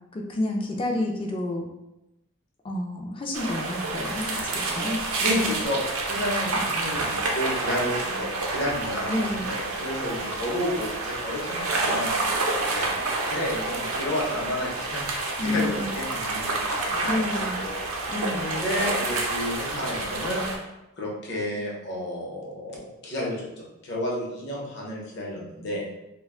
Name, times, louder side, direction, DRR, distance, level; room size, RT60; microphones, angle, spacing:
voice 1, 0.1-1.7 2.6-5.0 6.5-6.6 9.1-9.6 15.4-15.9 17.0-17.6 18.1-18.5, left 1 dB, 25° left, 1 dB, 0.4 m, -29 dB
sound 1, 3.3-20.6, right 2 dB, 85° right, 0.5 m, -29 dB
voice 2, 5.2-12.1 12.7-13.0 13.2-17.7 18.2-20.5 21.0-25.8, left 1 dB, 50° left, -3 dB, 0.7 m, -31 dB
2.4 x 2.2 x 3.5 m, 0.93 s
head